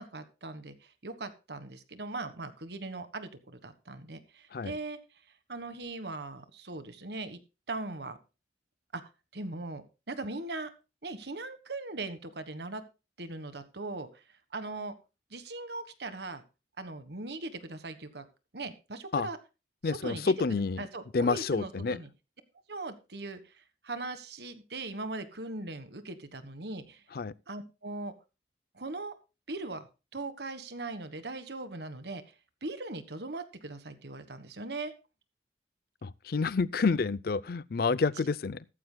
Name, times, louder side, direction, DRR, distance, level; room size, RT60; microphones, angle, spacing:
voice 1, 0.0-5.0 5.5-7.4 7.7-8.2 8.9-9.0 9.3-10.7 11.0-12.8 13.2-14.2 14.5-14.9 15.3-16.4 16.8-18.3 18.5-19.4 19.8-20.3 20.8-22.1 22.7-27.0 27.5-28.1 28.7-29.1 29.5-29.8 30.1-32.3 32.6-34.9, right 2 dB, 65° right, 1.5 m, -39 dB
voice 2, 19.8-20.8 21.1-22.0 27.1-27.3 36.0-38.7, left 4 dB, 55° left, 0.4 m, -29 dB
14.0 x 14.0 x 2.2 m
head